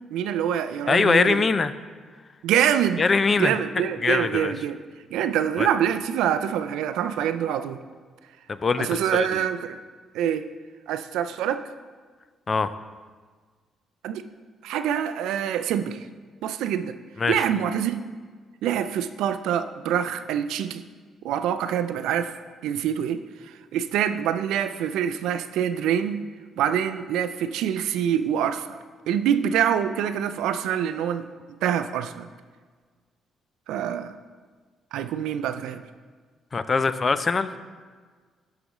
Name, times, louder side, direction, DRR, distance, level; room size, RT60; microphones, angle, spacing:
voice 1, 0.1-1.5 2.4-3.0 3.4-4.8 5.1-7.8 8.8-9.8 10.1-10.5 10.9-11.6 14.0-14.2 14.6-16.1 16.4-17.0 17.3-18.0 18.6-20.8 21.2-22.3 22.6-26.2 26.6-28.8 29.1-31.2 31.6-32.3 33.7-34.1 34.9-35.8, right 9 dB, 90° right, 10 dB, 0.3 m, -25 dB
voice 2, 0.9-1.7 3.0-3.6 4.0-4.5 5.6-5.7 8.5-9.4 12.5-12.7 17.2-17.4 36.5-37.5, left 4 dB, 35° left, 13 dB, 0.3 m, -22 dB
10.5 x 4.9 x 3.0 m, 1.5 s
cardioid pair, 90°, 0 cm